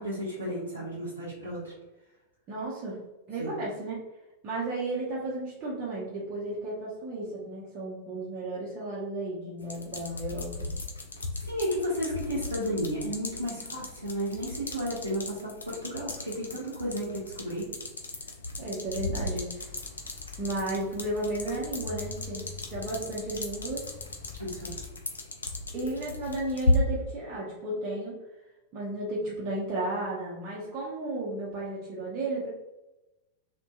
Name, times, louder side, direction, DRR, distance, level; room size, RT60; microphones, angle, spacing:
voice 1, 0.0-1.7 3.4-3.5 11.4-17.7 24.4-24.8, equal, 85° right, -8 dB, 0.6 m, -33 dB
voice 2, 2.5-3.0 3.3-4.0 4.4-10.7 18.6-19.7 20.4-23.9 25.7-28.2 28.7-32.5, right 2 dB, 35° right, -6 dB, 0.6 m, -33 dB
sound 1, 9.6-26.8, left 2 dB, 75° left, 0.4 m, -35 dB
sound 2, 19.6-24.9, left 5 dB, 30° left, 0.9 m, -45 dB
2.6 x 2.1 x 2.3 m, 1.0 s
figure-of-eight pair, 90°, 0 cm